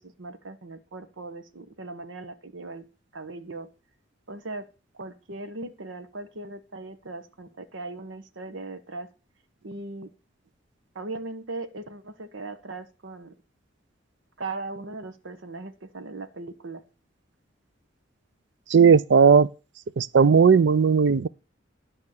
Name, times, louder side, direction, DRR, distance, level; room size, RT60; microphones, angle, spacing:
voice 1, 0.0-2.8 3.1-3.7 4.3-4.7 4.9-9.1 9.6-10.1 10.9-13.3 14.4-16.8, right 2 dB, 90° right, 1.1 m, -38 dB
voice 2, 18.7-19.5 20.0-21.3, right 6 dB, 65° right, 0.5 m, -16 dB
11.0 x 5.8 x 6.5 m
head